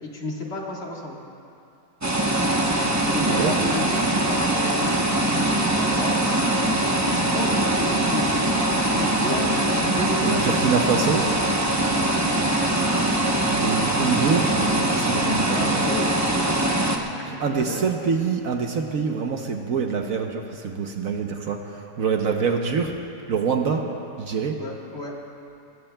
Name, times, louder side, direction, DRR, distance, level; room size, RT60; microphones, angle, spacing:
voice 1, 0.0-1.2 3.1-6.2 6.8-10.6 11.8-12.1 15.5-17.9 24.6-25.1, left 1 dB, 40° left, -2 dB, 1.8 m, -33 dB
sound 1, 2.0-17.0, right 1 dB, 20° right, 0.5 m, -22 dB
voice 2, 10.2-11.3 13.5-15.9 17.3-22.9 23.3-23.9 24.2-24.6, right 5 dB, 60° right, 3 dB, 1.1 m, -25 dB
22.0 x 18.5 x 2.2 m, 2.7 s
omnidirectional pair, 1.7 m